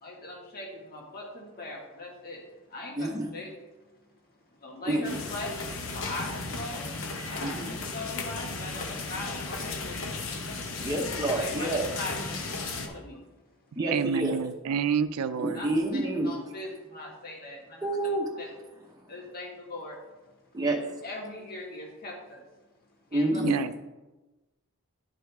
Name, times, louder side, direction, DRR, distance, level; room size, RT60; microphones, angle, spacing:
voice 1, 0.0-3.5 3.9-4.1 4.6-5.5 5.9-6.9 7.3-7.5 7.8-10.2 11.3-13.2 15.5-15.7 15.9-17.9 18.4-18.5 19.1-20.0 21.0-22.4 23.1-23.4, left 2 dB, 45° left, -1 dB, 1.7 m, -40 dB
voice 2, 3.0-3.3 4.9-5.2 7.4-7.7 10.8-11.9 13.8-14.4 15.4-16.4 17.8-18.3 20.5-21.0 23.1-23.6, right 1 dB, 15° right, -1 dB, 0.7 m, -28 dB
sound 1, 5.0-12.9, left 3 dB, 65° left, 0.9 m, -35 dB
voice 3, 13.9-15.6 23.4-23.7, right 7 dB, 80° right, 13 dB, 0.4 m, -28 dB
11.5 x 4.8 x 3.5 m, 1.1 s
head